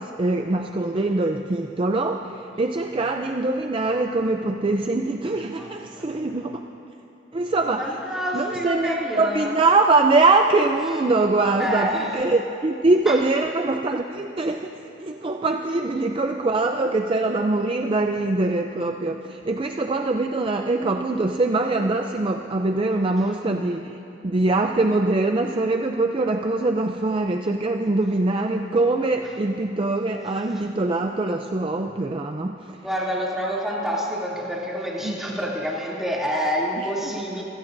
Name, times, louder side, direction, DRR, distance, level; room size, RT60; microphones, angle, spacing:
voice 1, 0.0-6.6 7.3-7.9 8.3-32.8 35.0-35.2 36.8-37.1, right 2 dB, 30° right, 5 dB, 0.5 m, -23 dB
voice 2, 5.6-6.4 7.8-9.5 11.6-12.2 13.1-13.2 32.7-37.4, equal, ahead, -6 dB, 2.7 m, -28 dB
27.0 x 17.0 x 2.6 m, 2.8 s
head